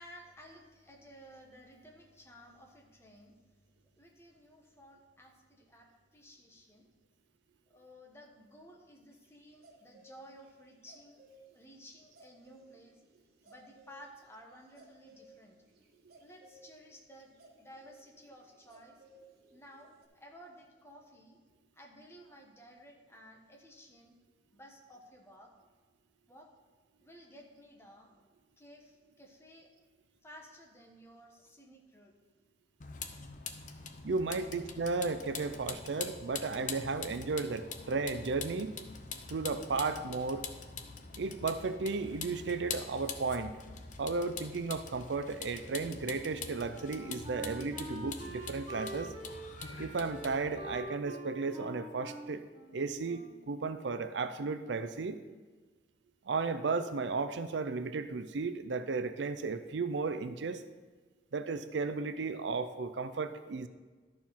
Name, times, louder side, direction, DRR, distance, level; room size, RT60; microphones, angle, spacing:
voice 1, 0.0-3.7 3.9-6.9 7.7-11.2 11.5-13.0 13.4-15.6 16.2-17.3 17.6-19.0 19.5-21.4 21.7-24.2 24.5-25.5 26.3-26.5 27.0-29.7 30.2-32.1 33.6-33.8 34.4-34.7, equal, 15° left, 1 dB, 1.2 m, -55 dB
sound 1, 9.2-11.4 11.8-11.9 12.1-20.1, right 1 dB, 60° right, 1.1 m, -60 dB
Vehicle, 32.8-50.8, left 5 dB, 45° left, 0.7 m, -44 dB
voice 2, 34.0-38.8 39.3-40.4 41.1-43.6 44.0-49.1 49.8-52.4 52.7-55.2 56.3-60.6 61.3-63.7, right 4 dB, 80° right, 11 dB, 0.5 m, -34 dB
Wind instrument woodwind instrument, 46.3-53.5, right 1 dB, 30° right, 1.3 m, -46 dB
12.5 x 4.5 x 5.6 m, 1.4 s
head